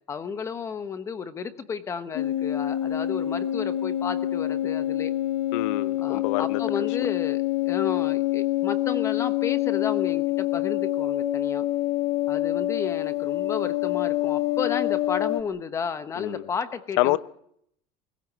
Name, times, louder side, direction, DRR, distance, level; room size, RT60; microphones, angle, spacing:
voice 1, 0.1-5.1 6.0-11.7 12.3-17.2, left 6 dB, 20° left, 1.0 m, -32 dB
sound 1, 2.1-15.4, left 14 dB, 50° left, 1.2 m, -26 dB
voice 2, 5.5-6.9 16.2-16.4 17.0-17.2, left 18 dB, 75° left, 0.8 m, -27 dB
23.0 x 16.0 x 8.5 m
cardioid pair, 175°, 16 cm